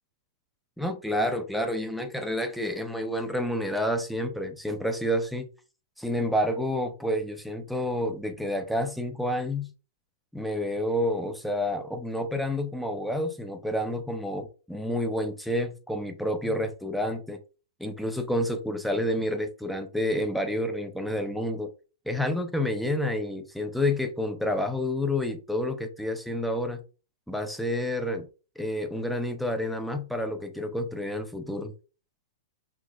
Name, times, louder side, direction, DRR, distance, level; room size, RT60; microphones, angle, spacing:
voice 1, 0.8-5.5 6.0-9.7 10.3-17.4 17.8-21.7 22.1-26.8 27.3-28.3 28.6-31.7, left 1 dB, ahead, 0.6 m, -29 dB
5.8 x 2.1 x 2.5 m
hypercardioid pair, 120°, 0 cm